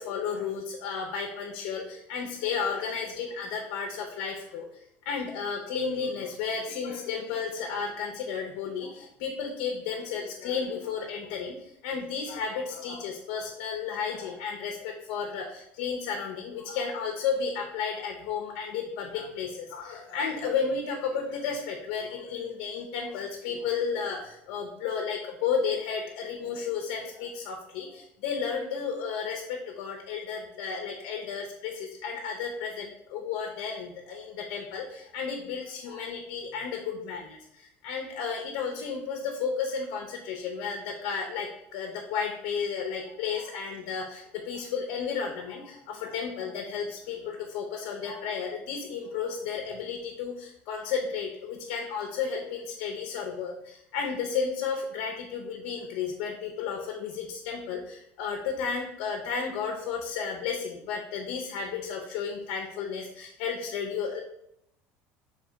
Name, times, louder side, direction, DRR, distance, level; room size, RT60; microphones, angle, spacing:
voice 1, 0.0-64.2, left 6 dB, 70° left, 2 dB, 0.6 m, -33 dB
3.3 x 3.2 x 3.7 m, 0.78 s
cardioid pair, 150°, 5 cm